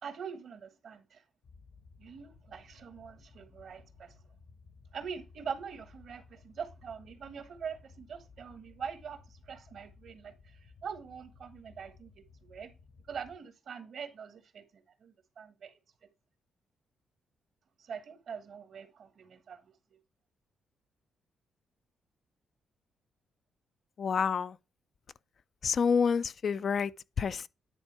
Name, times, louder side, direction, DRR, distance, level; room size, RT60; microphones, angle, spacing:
voice 1, 0.0-1.2 2.0-4.1 4.9-9.2 9.5-10.3 10.8-12.7 13.1-14.6 15.0-15.7 17.9-19.6, right 6 dB, 65° right, 1.3 m, -43 dB
sound 1, 1.4-13.4, left 4 dB, 70° left, 1.2 m, -58 dB
voice 2, 24.0-24.6 25.6-26.9 27.2-27.5, left 6 dB, 50° left, 0.3 m, -28 dB
9.9 x 3.5 x 4.6 m
cardioid pair, 95°, 0 cm